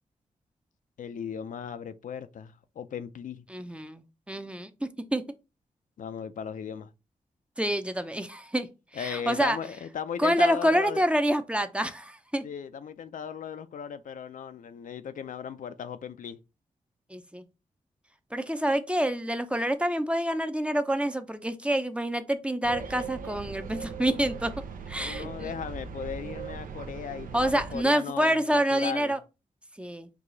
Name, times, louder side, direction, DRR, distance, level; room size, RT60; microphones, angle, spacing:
voice 1, 1.0-3.4 6.0-6.9 8.9-11.0 12.4-16.4 25.0-29.1, left 7 dB, 70° left, 0.4 m, -37 dB
voice 2, 3.5-5.2 7.6-8.7 8.9-9.6 10.2-12.5 17.1-17.4 18.3-24.5 24.9-25.5 27.3-29.2 29.8-30.1, right 1 dB, 10° right, 0.5 m, -27 dB
sound 1, 22.6-27.8, right 6 dB, 80° right, 0.6 m, -39 dB
4.7 x 2.3 x 3.8 m
cardioid pair, 60°, 14 cm